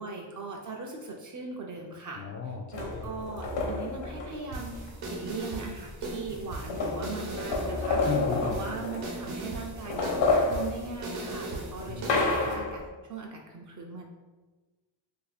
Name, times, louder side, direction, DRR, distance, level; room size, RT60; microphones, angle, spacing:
voice 1, 0.0-8.0 8.4-14.0, right 4 dB, 40° right, 0 dB, 0.5 m, -40 dB
voice 2, 2.2-3.1 8.1-8.7 11.9-12.1, left 4 dB, 40° left, 1 dB, 0.4 m, -35 dB
sound 1, 2.7-4.9 5.9-6.0 6.2-9.4 9.7-12.9, left 3 dB, 65° left, 0.9 m, -30 dB
sound 2, 4.5-12.5, right 2 dB, 85° right, 0.9 m, -39 dB
2.7 x 2.5 x 4.0 m, 1.2 s
cardioid pair, 105°, 47 cm